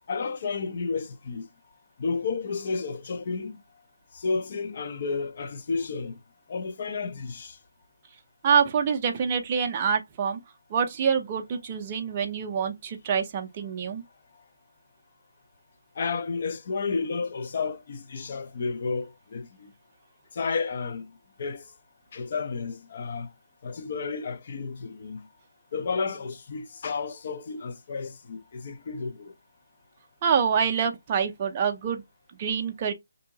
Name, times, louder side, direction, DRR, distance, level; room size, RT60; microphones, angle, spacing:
voice 1, 0.1-1.5 2.0-3.6 4.1-6.2 6.5-7.6 16.0-19.7 20.3-21.1 21.4-21.7 22.1-23.3 23.6-25.3 25.7-29.3, left 4 dB, 40° left, 0.5 m, -31 dB
voice 2, 8.4-10.4 10.7-14.0 30.2-32.0 32.4-32.9, right 7 dB, 25° right, 0.5 m, -26 dB
3.6 x 2.7 x 2.7 m
hypercardioid pair, 165°, 0 cm